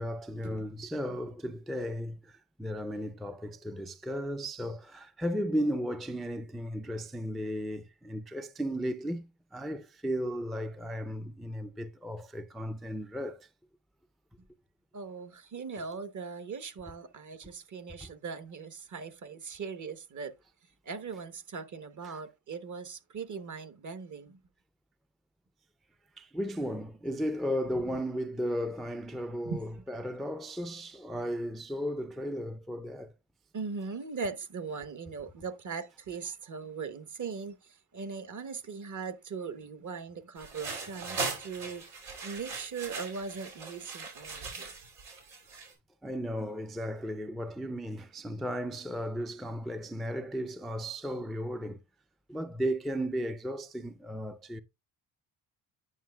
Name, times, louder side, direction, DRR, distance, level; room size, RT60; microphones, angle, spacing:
voice 1, 0.0-13.5 17.4-17.5 18.0-18.1 22.0-22.2 26.2-33.1 46.0-51.8 52.3-54.6, equal, ahead, 0.4 m, -35 dB
voice 2, 14.9-20.3 20.8-24.4 29.4-29.7 33.5-41.8 42.2-44.7, right 5 dB, 45° right, 1.1 m, -40 dB
sound 1, 40.4-45.7, right 4 dB, 90° right, 3.2 m, -39 dB
9.3 x 5.6 x 2.3 m
supercardioid pair, 70°, 43 cm